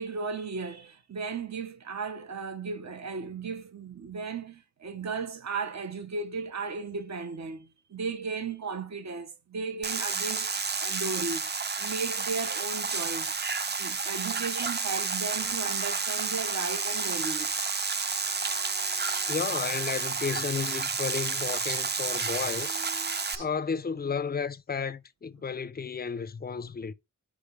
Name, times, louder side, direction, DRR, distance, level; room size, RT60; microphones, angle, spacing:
voice 1, 0.0-11.4 11.8-13.3 13.8-17.6, right 4 dB, 60° right, 0.9 m, -35 dB
sound 1, 9.8-23.3, right 4 dB, 35° right, 0.5 m, -31 dB
sound 2, 15.4-23.5, right 2 dB, 85° right, 2.3 m, -48 dB
voice 2, 19.3-22.8 23.4-26.9, left 6 dB, 30° left, 0.4 m, -33 dB
5.0 x 5.0 x 5.0 m
wide cardioid pair, 110°, 31 cm